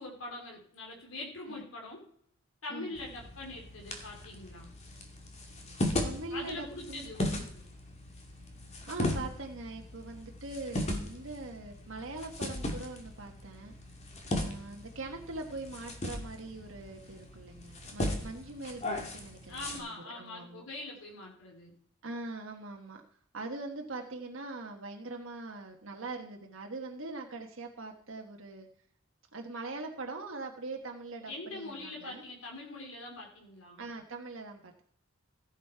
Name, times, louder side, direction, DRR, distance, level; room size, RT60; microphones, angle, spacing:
voice 1, 0.0-2.0 2.6-4.7 6.3-7.6 19.5-21.7 31.3-33.8, left 2 dB, 85° left, -1 dB, 3.5 m, -43 dB
sound 1, 2.9-19.8, left 1 dB, 35° left, 2.1 m, -38 dB
voice 2, 6.0-7.1 7.3-7.5 8.9-13.7 14.3-20.7 22.0-23.0 23.3-28.7 29.3-32.2 33.8-34.8, right 2 dB, 70° right, 2 dB, 1.4 m, -42 dB
16.0 x 7.4 x 4.6 m, 0.65 s
head